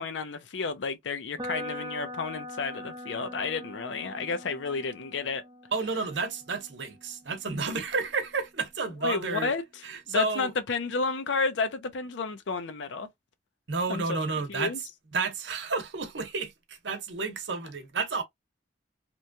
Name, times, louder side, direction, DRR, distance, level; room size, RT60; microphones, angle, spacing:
voice 1, 0.0-5.4 9.0-9.6 10.1-13.1 13.9-14.0 14.5-14.8, left 4 dB, 80° left, 0.5 m, -31 dB
sound 1, 1.4-9.3, equal, 20° right, 0.7 m, -43 dB
voice 2, 5.7-9.5 9.8-10.5 13.7-14.7 15.1-18.2, right 4 dB, 75° right, 0.8 m, -31 dB
3.0 x 2.2 x 2.6 m
head